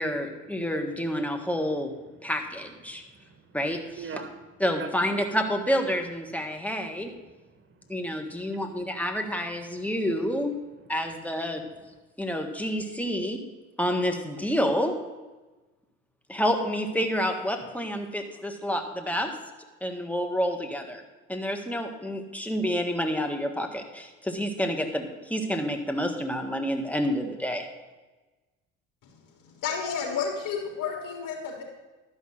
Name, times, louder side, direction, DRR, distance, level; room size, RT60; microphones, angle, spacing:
voice 1, 0.0-1.9 2.2-3.0 3.5-4.0 4.6-7.1 7.9-10.5 10.9-11.6 12.2-13.4 13.8-15.0 16.3-19.4 19.8-21.0 21.3-27.7, equal, 5° left, 4 dB, 1.5 m, -28 dB
voice 2, 2.9-3.6 4.0-5.2 6.5-9.0 9.7-9.9 11.3-12.0, right 5 dB, 35° right, 5 dB, 1.7 m, -46 dB
voice 3, 29.6-31.6, left 6 dB, 60° left, -1 dB, 3.4 m, -31 dB
12.0 x 5.4 x 6.4 m, 1.2 s
hypercardioid pair, 65°, 36 cm